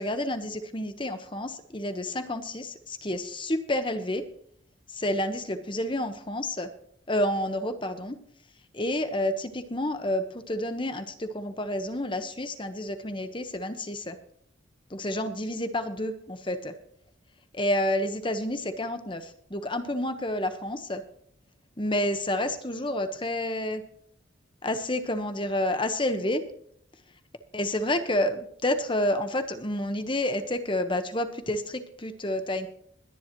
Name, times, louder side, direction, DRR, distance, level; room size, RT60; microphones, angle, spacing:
voice 1, 0.0-4.2 4.9-6.7 7.1-8.2 8.7-14.2 14.9-16.7 17.5-21.0 21.8-23.8 24.6-26.4 27.5-32.7, left 1 dB, 25° left, 9 dB, 1.1 m, -29 dB
21.0 x 10.5 x 3.0 m, 0.66 s
head